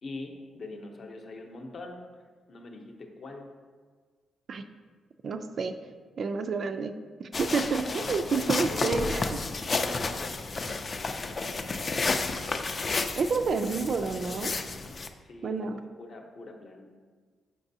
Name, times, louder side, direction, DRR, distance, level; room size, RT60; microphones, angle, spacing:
voice 1, 0.0-2.0 2.5-3.5 8.7-10.4 15.2-17.0, left 2 dB, 50° left, 3 dB, 0.7 m, -42 dB
voice 2, 5.2-5.8 6.2-6.9 7.2-9.3 13.2-14.5 15.4-15.8, right 4 dB, 45° right, 8 dB, 0.3 m, -29 dB
sound 1, 7.3-15.1, left 3 dB, 30° left, 0.3 m, -31 dB
6.0 x 5.9 x 2.7 m, 1.5 s
cardioid pair, 130°, 0 cm